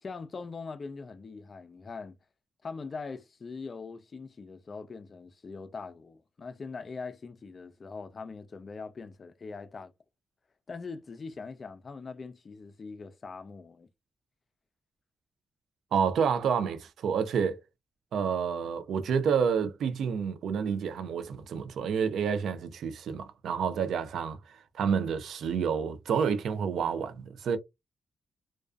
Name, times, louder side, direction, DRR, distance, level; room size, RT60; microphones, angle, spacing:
voice 1, 0.0-2.2 2.6-9.9 10.7-13.9, left 4 dB, 45° left, 0.4 m, -42 dB
voice 2, 15.9-17.6 18.1-27.6, right 6 dB, 80° right, 0.4 m, -29 dB
2.3 x 2.3 x 2.3 m
cardioid pair, 80°, 0 cm